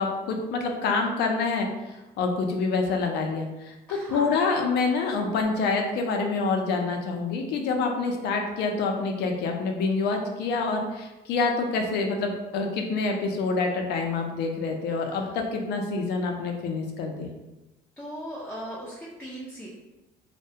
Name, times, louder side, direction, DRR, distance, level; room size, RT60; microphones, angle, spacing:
voice 1, 0.0-1.7 2.2-17.3, left 4 dB, 75° left, 3 dB, 0.4 m, -27 dB
voice 2, 3.9-4.3 15.1-15.4 18.0-19.7, right 1 dB, 10° left, -6 dB, 0.4 m, -38 dB
2.2 x 2.1 x 2.7 m, 1.0 s
cardioid pair, 110°, 17 cm